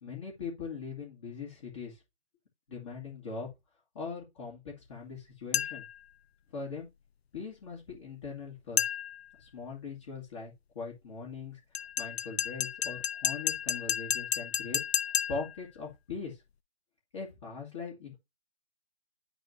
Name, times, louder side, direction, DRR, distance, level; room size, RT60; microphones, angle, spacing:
voice 1, 0.0-2.0 2.7-3.5 3.9-5.9 6.5-6.9 7.3-8.9 9.4-11.6 12.0-14.8 15.3-16.4 17.1-18.2, left 5 dB, 30° left, 2.0 m, -41 dB
sound 1, 5.5-6.0 8.8-9.3 11.7-15.6, left 9 dB, 75° left, 0.5 m, -32 dB
11.0 x 4.1 x 2.6 m
figure-of-eight pair, 160°, 32 cm